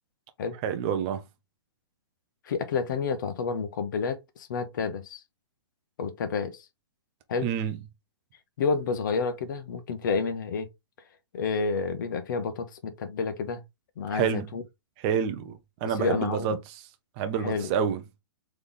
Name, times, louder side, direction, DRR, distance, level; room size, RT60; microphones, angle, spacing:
voice 1, 0.6-1.3 7.4-7.8 14.1-14.6 15.0-16.8 17.2-18.0, right 8 dB, 20° right, 0.5 m, -28 dB
voice 2, 2.5-5.2 6.0-6.6 7.3-7.5 8.6-10.7 11.3-13.6 14.0-14.6 15.8-16.6 17.4-17.7, left 5 dB, 45° left, 1.0 m, -29 dB
4.0 x 3.3 x 3.6 m
hypercardioid pair, 170°, 14 cm